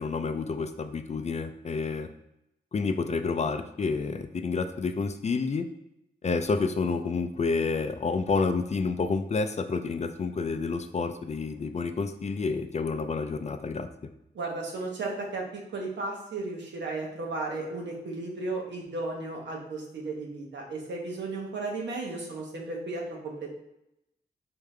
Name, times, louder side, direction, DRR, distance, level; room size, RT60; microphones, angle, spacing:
voice 1, 0.0-2.1 2.7-5.6 6.2-13.9, left 4 dB, 40° left, 8 dB, 0.4 m, -29 dB
voice 2, 14.3-23.5, right 3 dB, 90° right, -1 dB, 1.1 m, -34 dB
4.6 x 3.5 x 3.2 m, 0.84 s
wide cardioid pair, 85°, 18 cm